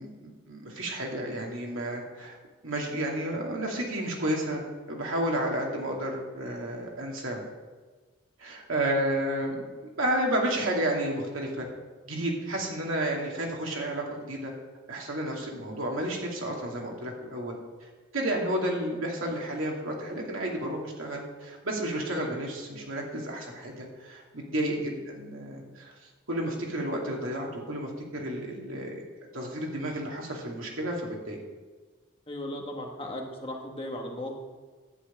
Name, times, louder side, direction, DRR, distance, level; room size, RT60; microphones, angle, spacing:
voice 1, 0.0-2.3 2.6-4.6 4.9-7.4 8.4-9.6 10.0-11.7 12.1-14.5 14.9-25.9 26.3-28.9 29.3-31.4, right 1 dB, 85° right, -1 dB, 2.4 m, -31 dB
voice 2, 24.5-24.8 32.3-34.3, left 1 dB, 25° left, 1 dB, 1.5 m, -37 dB
11.0 x 5.7 x 8.6 m, 1.3 s
head